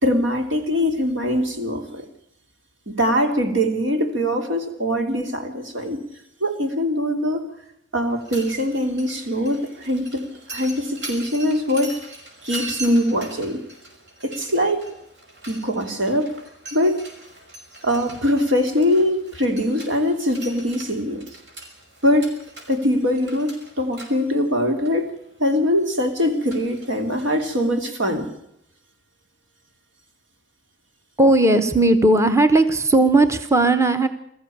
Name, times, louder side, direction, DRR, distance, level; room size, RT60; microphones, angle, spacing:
voice 1, 0.0-2.1 2.9-6.0 6.4-7.4 7.9-12.0 12.4-13.6 14.2-14.8 15.5-16.3 16.7-17.0 17.8-21.2 22.0-22.3 22.7-25.1 25.4-28.3, equal, 85° right, 4 dB, 3.1 m, -22 dB
Mechanisms, 8.1-27.7, right 2 dB, 65° right, 5.8 m, -41 dB
voice 2, 31.2-34.1, right 2 dB, 15° right, 9 dB, 1.0 m, -16 dB
21.5 x 14.5 x 8.6 m, 0.75 s
head